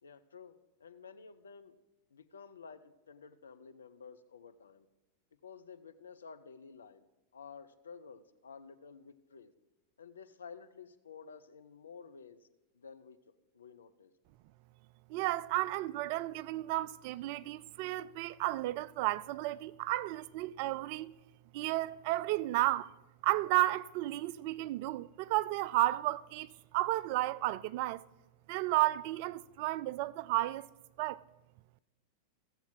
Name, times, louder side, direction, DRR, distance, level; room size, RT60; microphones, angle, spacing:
voice 1, 0.0-1.7 2.1-4.9 5.4-7.0 7.3-9.5 10.0-12.4 12.7-13.2 13.5-14.1, left 5 dB, 70° left, 0.6 m, -52 dB
voice 2, 15.1-21.1 21.5-22.9 23.2-28.0 28.5-30.7 31.0-31.2, right 17 dB, 45° right, 0.3 m, -33 dB
16.0 x 7.1 x 3.8 m
figure-of-eight pair, 90°, 0 cm